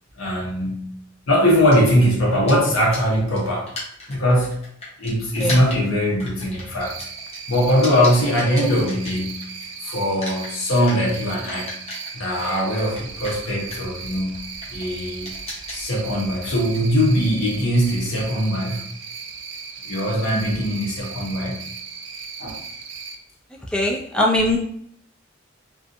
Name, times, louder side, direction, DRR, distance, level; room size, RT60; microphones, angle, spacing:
voice 1, 0.2-1.0 1.3-3.7 4.1-4.6 5.0-7.0 7.5-9.6 9.8-11.8 12.1-15.4 15.7-18.9 19.9-21.7 22.4-22.6, equal, 90° left, -2 dB, 0.9 m, -21 dB
sound 1, 1.5-9.7 10.0-18.3, left 2 dB, 35° left, 0.8 m, -37 dB
Cricket, 6.8-23.2, right 5 dB, 65° right, 0.4 m, -37 dB
voice 2, 23.7-24.6, left 1 dB, 5° left, -2 dB, 0.3 m, -21 dB
2.6 x 2.4 x 2.5 m, 0.66 s
head